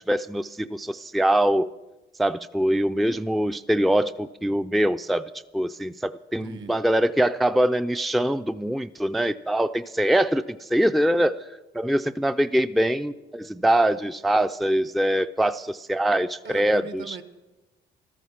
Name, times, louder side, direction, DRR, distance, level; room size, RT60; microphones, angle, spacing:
voice 1, 0.1-1.7 2.2-5.3 5.5-11.4 11.7-17.2, right 1 dB, ahead, 11 dB, 0.4 m, -23 dB
voice 2, 6.4-6.8 16.4-17.2, right 5 dB, 65° right, 10 dB, 1.5 m, -39 dB
14.5 x 13.0 x 5.7 m, 1.1 s
cardioid pair, 90°, 20 cm